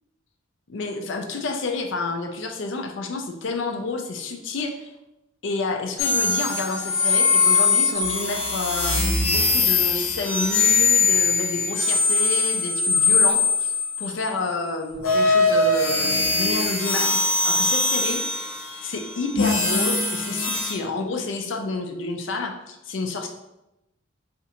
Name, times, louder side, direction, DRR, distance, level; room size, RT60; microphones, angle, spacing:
voice 1, 0.7-4.9 5.4-17.1 17.4-18.2 18.8-23.3, left 3 dB, 65° left, 4 dB, 0.5 m, -29 dB
sound 1, 6.0-14.3 15.0-20.7, left 3 dB, 85° left, 0.9 m, -21 dB
4.2 x 2.5 x 2.9 m, 0.92 s
head